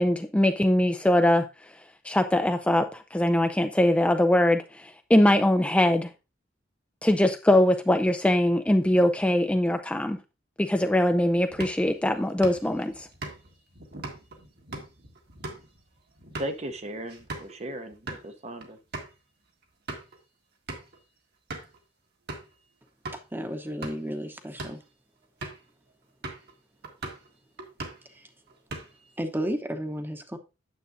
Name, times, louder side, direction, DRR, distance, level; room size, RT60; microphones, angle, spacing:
voice 1, 0.0-1.4 2.0-6.1 7.0-10.2 10.6-13.1, left 1 dB, 5° left, 0.4 m, -22 dB
sound 1, 11.5-17.6 17.9-18.2 18.6-18.7 18.9-19.1 19.6-20.2 20.7-21.0 21.5-21.8 22.3-22.5 23.0-23.2 23.7-24.1 24.5-24.8 25.4-25.7 26.2-26.5 26.8-27.3 27.6-28.1 28.5-29.1, right 2 dB, 60° right, 1.7 m, -40 dB
voice 2, 16.4-18.8, right 1 dB, 35° right, 0.8 m, -36 dB
voice 3, 23.3-24.8 28.1-28.2 29.2-30.4, equal, 10° right, 0.9 m, -32 dB
9.3 x 7.4 x 2.6 m
head